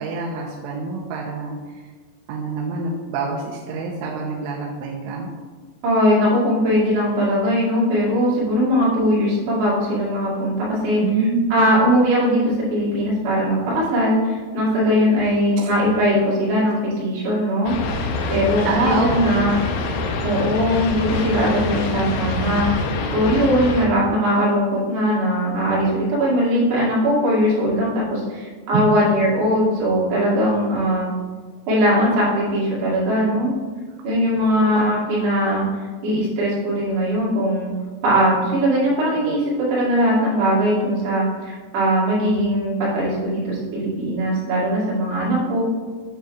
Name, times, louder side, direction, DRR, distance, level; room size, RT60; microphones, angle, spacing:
voice 1, 0.0-1.8 2.3-5.3 11.0-11.5 15.6-15.7 18.7-19.1 28.7-28.9, right 4 dB, 90° right, -1 dB, 3.2 m, -25 dB
voice 2, 5.8-11.0 11.5-17.7 18.3-19.6 20.2-22.7 23.1-31.1 31.7-33.5 34.0-35.6 36.0-37.7 38.0-45.6, equal, 65° right, -7 dB, 4.3 m, -20 dB
sound 1, 17.7-23.9, left 3 dB, 80° left, 3.2 m, -25 dB
9.4 x 7.9 x 2.4 m, 1.5 s
omnidirectional pair, 5.5 m